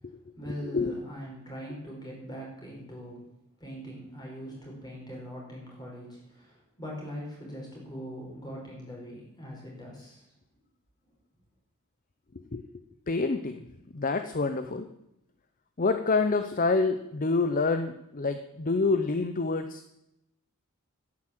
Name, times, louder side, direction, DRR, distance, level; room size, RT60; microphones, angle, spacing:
voice 1, 0.0-3.2 3.6-10.3, equal, 20° left, -3 dB, 5.7 m, -41 dB
voice 2, 13.1-13.6 13.9-14.9 15.8-19.8, left 3 dB, 40° left, 9 dB, 0.7 m, -27 dB
11.0 x 9.8 x 7.6 m, 0.85 s
head